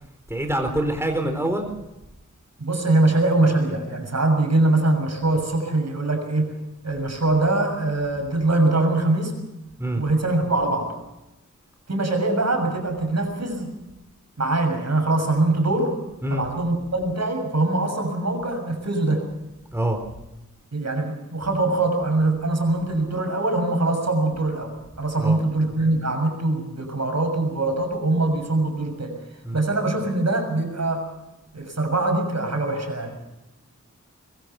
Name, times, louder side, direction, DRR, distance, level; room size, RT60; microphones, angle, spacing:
voice 1, 0.3-1.7 9.8-10.0 16.2-16.4 19.7-20.0 25.2-25.4 29.4-29.6, right 1 dB, 10° right, 4 dB, 4.1 m, -25 dB
voice 2, 2.6-6.5 6.8-9.3 10.0-11.0 11.9-13.7 14.4-16.0 16.3-19.3 20.7-29.2 29.5-31.1 31.5-33.2, right 2 dB, 60° right, 5 dB, 6.6 m, -23 dB
24.5 x 22.5 x 6.0 m, 0.96 s
wide cardioid pair, 80°, 30 cm